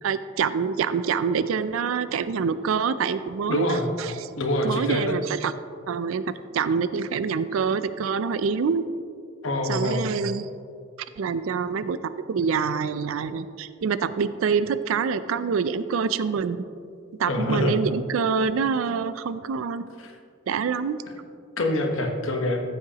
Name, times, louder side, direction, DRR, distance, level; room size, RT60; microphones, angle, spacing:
voice 1, 0.0-3.7 4.0-4.3 4.6-5.5 5.9-8.8 9.6-10.5 11.2-12.0 12.3-16.6 17.2-19.8 20.5-21.0, right 6 dB, 85° right, 14 dB, 0.4 m, -26 dB
voice 2, 3.5-3.9 4.4-5.2 9.4-10.1 17.3-17.8 20.0-20.1 21.6-22.6, left 1 dB, 75° left, 3 dB, 1.2 m, -25 dB
14.0 x 7.7 x 2.9 m, 2.3 s
head